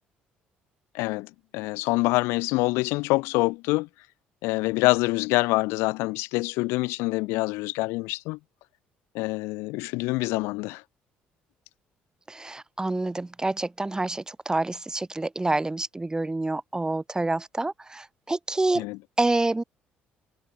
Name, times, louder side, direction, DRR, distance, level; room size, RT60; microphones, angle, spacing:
voice 1, 0.9-3.9 4.4-8.4 9.1-10.8 18.8-19.0, left 23 dB, 80° left, 3.5 m, -26 dB
voice 2, 12.3-18.8 19.2-19.6, right 2 dB, 15° right, 7.1 m, -27 dB
supercardioid pair, 70°, 4 cm